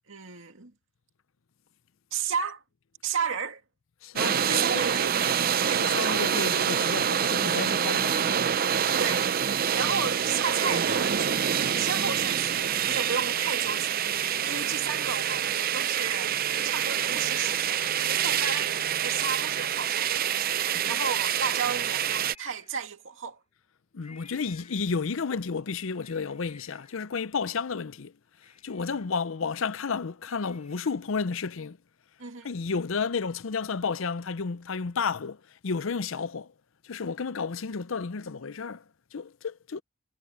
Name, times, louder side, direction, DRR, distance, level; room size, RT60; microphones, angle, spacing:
voice 1, 0.1-0.7 2.1-2.6 3.0-3.6 4.5-5.4 5.6-6.3 9.0-9.3 9.6-16.3 16.6-18.7 19.0-23.4 32.2-32.5, right 6 dB, 70° right, 2.4 m, -33 dB
voice 2, 4.0-5.0 5.8-8.4 10.0-10.1 14.4-14.7 20.7-21.0 23.9-28.1 28.6-31.8 32.4-36.5 36.8-38.8 39.1-39.8, left 5 dB, 70° left, 0.6 m, -32 dB
sound 1, 4.2-22.3, right 8 dB, 45° right, 0.5 m, -26 dB
sound 2, 9.1-17.8, left 2 dB, 10° left, 7.3 m, -52 dB
Cat, 19.6-21.1 21.9-23.3 24.0-25.3 25.7-27.7 28.1-28.2 28.4-31.2 31.6-31.7, left 5 dB, 30° left, 8.0 m, -58 dB
head